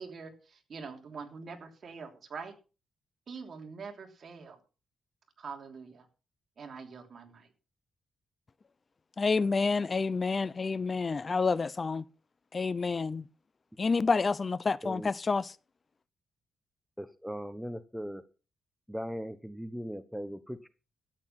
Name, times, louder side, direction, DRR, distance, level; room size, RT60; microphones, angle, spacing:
voice 1, 0.0-2.5 3.3-4.6 5.4-6.1 6.6-7.5, right 5 dB, 55° right, 3.2 m, -44 dB
voice 2, 9.2-12.0 12.5-13.2 13.8-15.5, left 4 dB, 35° left, 0.5 m, -29 dB
voice 3, 17.0-18.2 18.9-20.7, equal, ahead, 1.0 m, -39 dB
13.5 x 9.7 x 5.9 m
cardioid pair, 100°, 0 cm